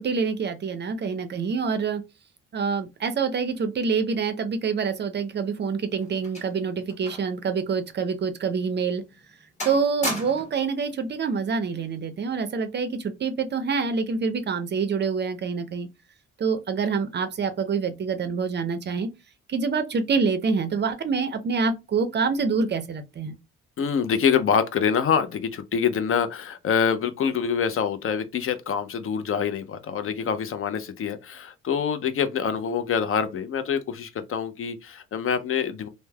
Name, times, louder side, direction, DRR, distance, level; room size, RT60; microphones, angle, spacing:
voice 1, 0.0-2.0 2.5-9.0 9.6-15.9 16.4-19.1 19.5-23.4, right 5 dB, 35° right, 0.4 m, -26 dB
sound 1, 5.3-7.4 7.7-7.9 8.5-8.6 9.1-9.3 9.6-10.6 11.6-11.9, left 1 dB, 25° left, 1.4 m, -35 dB
voice 2, 23.8-35.9, left 7 dB, 45° left, 0.4 m, -25 dB
3.1 x 2.0 x 2.2 m
cardioid pair, 90°, 30 cm